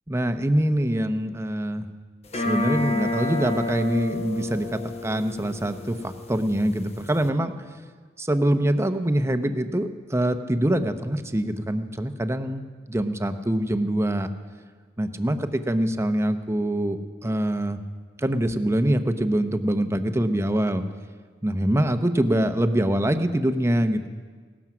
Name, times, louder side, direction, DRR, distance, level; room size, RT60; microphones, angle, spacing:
voice 1, 0.1-1.9 2.3-7.6 8.2-12.6 12.9-14.3 15.0-17.8 18.2-20.8 21.4-24.1, right 1 dB, 15° right, 8 dB, 0.8 m, -24 dB
sound 1, 2.3-7.3, left 2 dB, 35° left, 1.1 m, -30 dB
17.5 x 13.5 x 6.1 m, 1.5 s
head